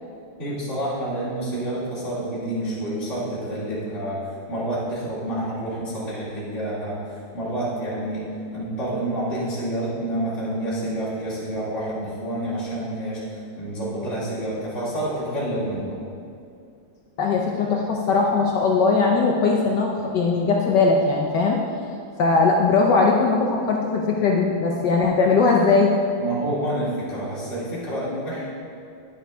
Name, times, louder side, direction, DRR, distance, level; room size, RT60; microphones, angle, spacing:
voice 1, 0.4-8.2 8.5-16.0 26.2-28.4, right 1 dB, 35° left, -9 dB, 2.7 m, -28 dB
voice 2, 17.2-21.6 22.2-25.9, left 4 dB, 65° left, 0 dB, 1.2 m, -20 dB
10.0 x 9.0 x 3.5 m, 2.4 s
omnidirectional pair, 2.4 m